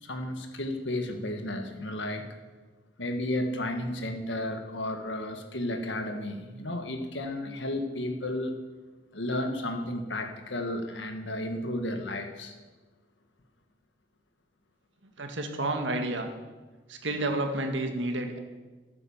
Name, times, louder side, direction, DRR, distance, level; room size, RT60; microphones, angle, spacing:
voice 1, 0.0-2.3 3.0-8.6 9.1-12.6, left 1 dB, 75° left, 6 dB, 1.6 m, -33 dB
voice 2, 15.2-16.3 16.9-18.4, right 2 dB, 75° right, 4 dB, 1.9 m, -30 dB
13.0 x 9.7 x 7.1 m, 1.3 s
head